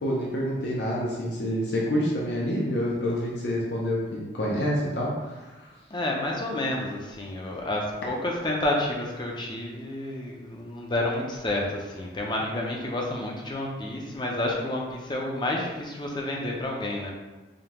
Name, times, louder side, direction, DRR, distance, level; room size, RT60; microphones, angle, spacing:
voice 1, 0.0-5.3 5.5-5.7, equal, 75° left, -4 dB, 0.7 m, -27 dB
voice 2, 5.9-17.1, left 1 dB, 25° left, -1 dB, 0.5 m, -30 dB
5.0 x 2.3 x 2.9 m, 1.2 s
head